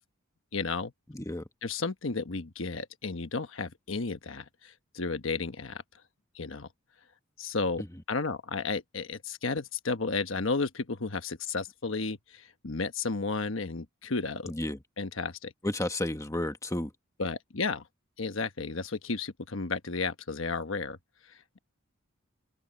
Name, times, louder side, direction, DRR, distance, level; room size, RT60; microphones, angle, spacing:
voice 1, 0.5-0.9 1.6-5.8 6.3-6.7 7.4-7.8 8.1-14.5 15.0-15.5 17.2-17.8 18.2-21.0 21.3-21.6, left 4 dB, 70° left, 1.2 m, -33 dB
voice 2, 1.1-1.4 14.5-14.8 15.6-16.9, left 1 dB, 15° left, 1.4 m, -32 dB
open air
head